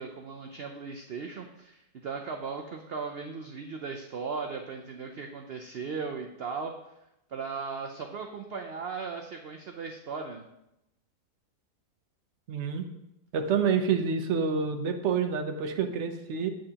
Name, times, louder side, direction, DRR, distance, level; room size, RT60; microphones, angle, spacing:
voice 1, 0.0-6.7 7.3-10.4, right 5 dB, 85° right, 3 dB, 0.5 m, -37 dB
voice 2, 12.5-12.8 13.3-16.5, right 6 dB, 55° right, 6 dB, 0.9 m, -28 dB
8.8 x 7.6 x 2.8 m, 0.87 s
omnidirectional pair, 1.7 m